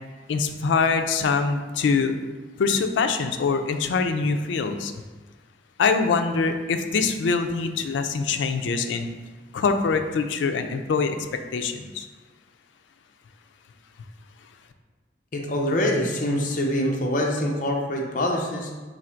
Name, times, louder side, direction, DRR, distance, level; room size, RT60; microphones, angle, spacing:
voice 1, 0.3-2.1 2.6-4.9 5.8-9.1 9.5-11.2 11.5-12.0, left 5 dB, 90° left, 7 dB, 0.4 m, -24 dB
voice 2, 15.3-18.7, left 1 dB, 45° left, 0 dB, 0.6 m, -25 dB
4.0 x 2.5 x 4.4 m, 1.3 s
head